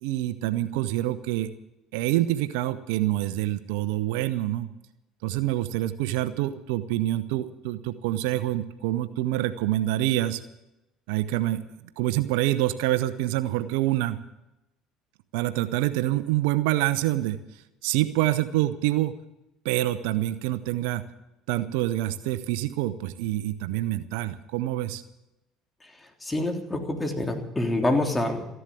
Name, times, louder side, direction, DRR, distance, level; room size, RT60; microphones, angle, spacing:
voice 1, 0.0-1.5 1.9-4.7 5.2-10.4 11.1-11.6 12.0-14.2 15.3-17.4 17.8-19.2 19.6-21.0 21.5-25.0, right 15 dB, 75° right, 12 dB, 0.9 m, -26 dB
voice 2, 26.2-28.4, left 2 dB, 15° left, 3 dB, 3.5 m, -26 dB
15.0 x 11.5 x 8.5 m, 0.91 s
hypercardioid pair, 70°, 0 cm